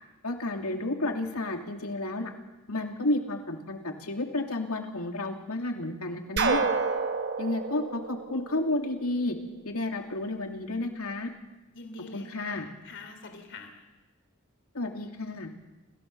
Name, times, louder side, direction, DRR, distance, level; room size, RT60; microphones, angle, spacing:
voice 1, 0.2-2.3 2.7-6.7 7.4-9.4 9.6-11.3 12.1-12.7 14.7-15.5, left 2 dB, 80° left, 3 dB, 2.8 m, -31 dB
sound 1, 6.4-9.2, right 4 dB, 50° right, 1.3 m, -29 dB
voice 2, 11.7-13.9, left 3 dB, 55° left, 5 dB, 3.1 m, -45 dB
27.5 x 16.5 x 6.9 m, 1.1 s
head